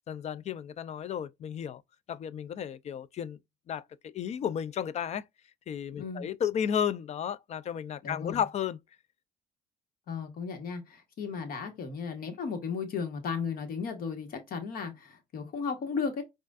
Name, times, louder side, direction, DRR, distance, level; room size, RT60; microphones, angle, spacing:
voice 1, 0.1-1.8 2.1-3.4 3.7-5.2 5.7-8.8, left 8 dB, 40° left, 0.4 m, -33 dB
voice 2, 8.0-8.4 10.1-16.2, left 5 dB, 60° left, 1.3 m, -35 dB
4.9 x 2.4 x 2.4 m
cardioid pair, 110°, 17 cm